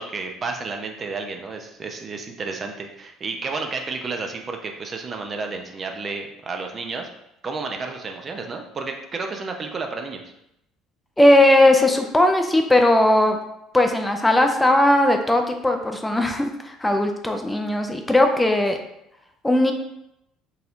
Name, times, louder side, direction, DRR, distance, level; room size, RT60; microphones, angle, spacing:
voice 1, 0.0-7.1 7.4-10.2, right 4 dB, 40° right, 3 dB, 0.5 m, -31 dB
voice 2, 11.2-13.4 13.7-18.8 19.4-19.7, left 1 dB, 10° left, 4 dB, 0.5 m, -18 dB
4.0 x 2.7 x 2.5 m, 0.82 s
hypercardioid pair, 60°, 0 cm